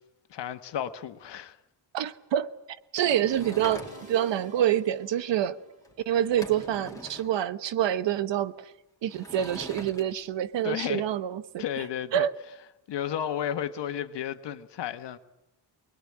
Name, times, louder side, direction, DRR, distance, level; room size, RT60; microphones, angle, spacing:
voice 1, 0.3-1.6 10.6-11.0 11.6-12.3 12.9-15.2, left 10 dB, 75° left, 1.6 m, -32 dB
voice 2, 1.9-2.5 2.9-5.6 6.1-8.7 9.0-11.6 12.1-12.3, right 11 dB, 85° right, 1.2 m, -27 dB
Sliding door / Wood, 3.1-4.3 5.8-5.9 6.2-7.3 9.1-10.0, left 1 dB, 10° left, 3.0 m, -42 dB
sound 1, 3.1-6.3, right 3 dB, 15° right, 2.8 m, -50 dB
24.0 x 21.0 x 8.7 m
wide cardioid pair, 140°, 42 cm